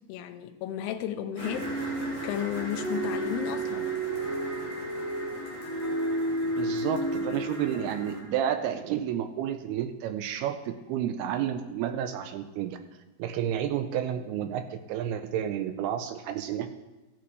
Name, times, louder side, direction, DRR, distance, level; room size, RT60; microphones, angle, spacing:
voice 1, 0.1-4.0, left 10 dB, 90° left, 8 dB, 2.7 m, -34 dB
sound 1, 1.4-8.2, right 1 dB, 50° right, 2.8 m, -31 dB
voice 2, 6.4-12.8 13.2-16.7, right 10 dB, 80° right, 8 dB, 2.5 m, -31 dB
16.0 x 8.2 x 3.2 m, 1.1 s
omnidirectional pair, 4.7 m